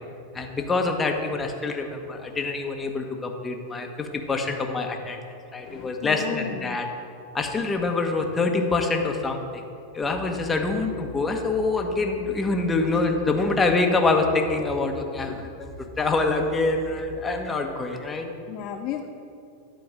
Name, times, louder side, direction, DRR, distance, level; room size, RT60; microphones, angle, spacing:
voice 1, 0.3-5.2 5.5-6.9 7.3-9.6 9.9-15.7 16.0-18.3, left 3 dB, 15° left, 3 dB, 1.3 m, -25 dB
voice 2, 1.9-2.3 5.6-6.8 15.2-15.5 18.5-19.1, left 9 dB, 50° left, 4 dB, 0.6 m, -35 dB
sound 1, 9.9-17.3, left 1 dB, 80° left, 1.4 m, -45 dB
10.5 x 4.6 x 7.6 m, 2.5 s
hypercardioid pair, 95°, 0 cm